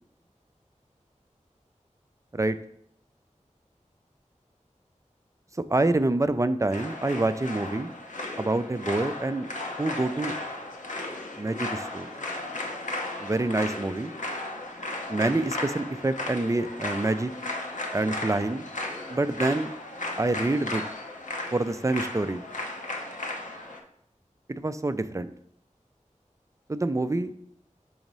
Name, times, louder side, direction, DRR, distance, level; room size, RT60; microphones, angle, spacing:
voice 1, 5.7-8.0 8.4-9.5 9.8-10.4 11.4-12.1 13.2-14.1 15.1-17.3 17.9-18.6 19.1-19.7 20.2-20.8 21.5-22.4 24.5-25.3 26.7-27.3, right 2 dB, 25° right, 11 dB, 0.4 m, -26 dB
sound 1, 6.7-23.8, left 2 dB, 75° left, 0.8 m, -35 dB
6.3 x 3.0 x 5.3 m, 0.70 s
wide cardioid pair, 45°, 13 cm